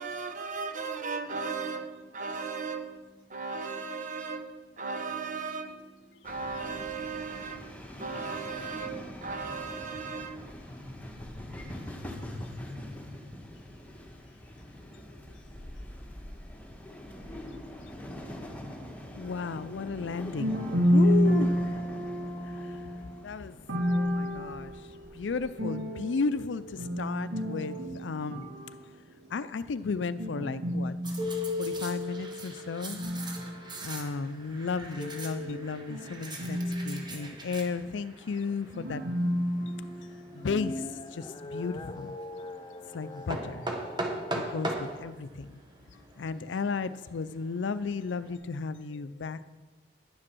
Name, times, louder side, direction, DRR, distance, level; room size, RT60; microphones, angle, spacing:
voice 1, 0.0-10.8, right 4 dB, 45° right, 1.0 m, -37 dB
sound 1, 6.2-25.5, left 1 dB, 10° left, 1.4 m, -44 dB
voice 2, 14.9-15.3 19.2-20.6 20.9-22.1 22.6-22.8 23.2-23.6 23.9-24.7 25.1-28.4 29.3-30.9 31.6-33.0 33.8-39.0 40.3-42.1 42.9-43.7 44.3-45.6 46.2-49.5, left 4 dB, 80° left, 0.5 m, -34 dB
voice 3, 19.2-19.9 20.4-26.2 26.8-29.3 30.2-34.3 35.0-37.2 38.7-40.5, equal, 90° right, 2.2 m, -31 dB
sound 2, 31.0-48.4, right 2 dB, 25° right, 1.4 m, -42 dB
sound 3, 40.2-44.6, left 2 dB, 25° left, 0.4 m, -41 dB
10.5 x 7.6 x 6.2 m
head